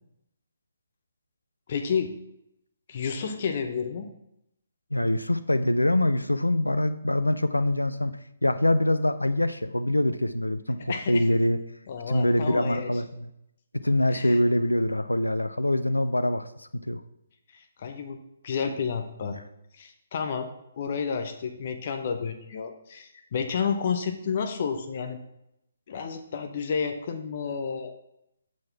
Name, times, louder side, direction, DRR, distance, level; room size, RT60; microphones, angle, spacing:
voice 1, 1.7-2.1 2.9-4.1 10.9-11.3 11.9-12.9 14.1-14.4 17.5-19.4 19.7-20.5 20.8-25.2 25.9-27.9, left 6 dB, 45° left, 6 dB, 0.7 m, -31 dB
voice 2, 4.9-8.1 8.4-11.6 12.1-13.3 13.8-17.0, left 1 dB, 90° left, 11 dB, 0.4 m, -24 dB
6.5 x 4.2 x 5.7 m, 0.81 s
figure-of-eight pair, 135°, 0 cm